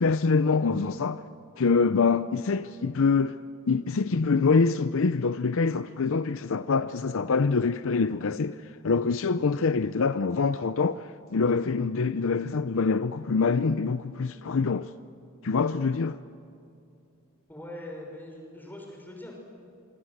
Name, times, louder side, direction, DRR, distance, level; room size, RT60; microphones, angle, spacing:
voice 1, 0.0-1.2 1.6-3.4 3.7-8.6 8.8-14.9 15.4-16.2, left 4 dB, 60° left, 0.6 m, -25 dB
voice 2, 17.5-19.3, left 1 dB, 10° left, 6.2 m, -42 dB
26.0 x 24.5 x 7.9 m
head